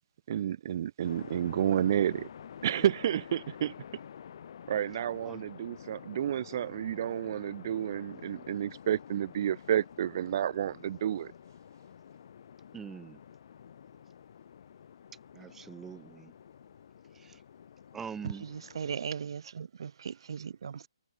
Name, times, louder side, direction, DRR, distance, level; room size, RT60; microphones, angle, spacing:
voice 1, 0.3-2.3 2.6-3.7 4.7-11.3, right 10 dB, 45° right, 0.4 m, -30 dB
sound 1, 1.0-19.1, left 8 dB, 55° left, 3.3 m, -50 dB
voice 2, 12.7-13.2 15.3-16.3 17.1-17.4 17.9-18.5, right 7 dB, 10° right, 0.9 m, -43 dB
voice 3, 18.4-20.9, right 7 dB, 60° right, 0.9 m, -38 dB
hypercardioid pair, 150°, 3 cm